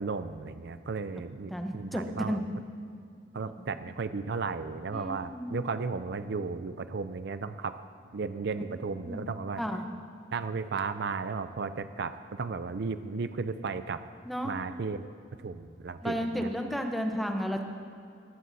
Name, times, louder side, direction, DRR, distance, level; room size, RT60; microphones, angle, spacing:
voice 1, 0.0-2.4 3.3-7.8 8.1-9.6 10.3-14.0 14.4-15.1 15.4-16.5, right 4 dB, 60° right, 11 dB, 0.5 m, -34 dB
voice 2, 1.5-2.4 4.9-5.7 9.0-9.2 9.6-9.8 14.3-14.6 16.0-17.6, equal, ahead, 3 dB, 0.8 m, -32 dB
19.0 x 15.5 x 2.7 m, 2.4 s
head